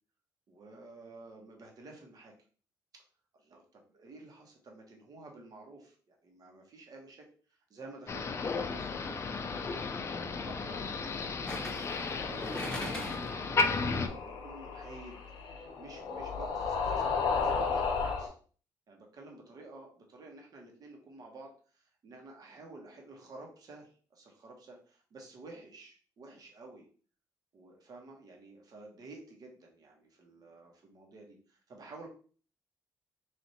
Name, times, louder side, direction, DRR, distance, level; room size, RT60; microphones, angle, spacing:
voice 1, 0.5-2.3 3.3-9.6 10.2-15.2 15.8-18.3 18.9-26.8 27.5-32.1, right 2 dB, 55° right, 1 dB, 1.3 m, -51 dB
Motor vehicle (road), 8.1-14.1, left 4 dB, 35° left, 0.5 m, -34 dB
sound 1, 8.8-9.1 11.5-13.4 13.8-13.9, left 1 dB, 10° left, 0.9 m, -40 dB
sound 2, 11.6-18.3, left 5 dB, 85° left, 0.8 m, -35 dB
3.3 x 2.8 x 4.1 m, 0.42 s
cardioid pair, 100°, 8 cm